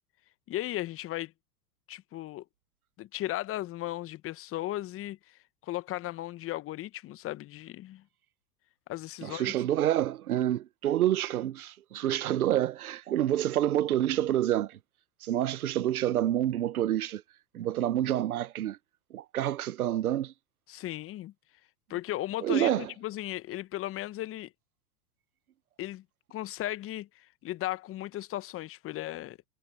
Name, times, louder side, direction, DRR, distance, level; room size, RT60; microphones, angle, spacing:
voice 1, 0.5-1.3 1.9-2.4 3.0-8.0 8.9-9.5 20.7-21.3 21.9-24.5 25.8-26.0 26.3-29.4, left 15 dB, 30° left, 1.2 m, -36 dB
voice 2, 9.2-14.7 15.2-17.2 17.5-18.8 19.1-20.3 22.4-22.8, right 12 dB, 70° right, 1.5 m, -28 dB
hypercardioid pair, 100°, 45 cm